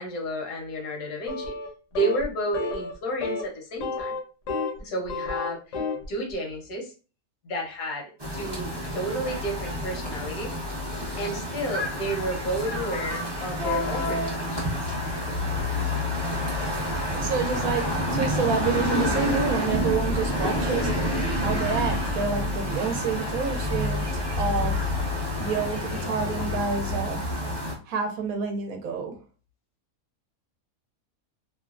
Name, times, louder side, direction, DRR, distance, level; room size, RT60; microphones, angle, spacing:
voice 1, 0.0-1.5 1.9-4.2 4.8-5.8 6.1-6.9 7.4-10.5 11.2-14.6, right 1 dB, 80° left, 1 dB, 1.3 m, -31 dB
sound 1, 1.3-1.7 2.0-2.2 2.5-2.9 3.2-3.4 3.8-4.8 5.1-6.1, left 3 dB, 65° left, 1.0 m, -30 dB
sound 2, 8.2-27.7, left 1 dB, 25° right, 0.7 m, -28 dB
voice 2, 17.1-20.9 21.4-24.8 25.4-27.2 27.8-29.2, right 5 dB, 75° right, 4 dB, 1.0 m, -29 dB
3.0 x 2.1 x 2.4 m, 0.35 s
omnidirectional pair, 1.5 m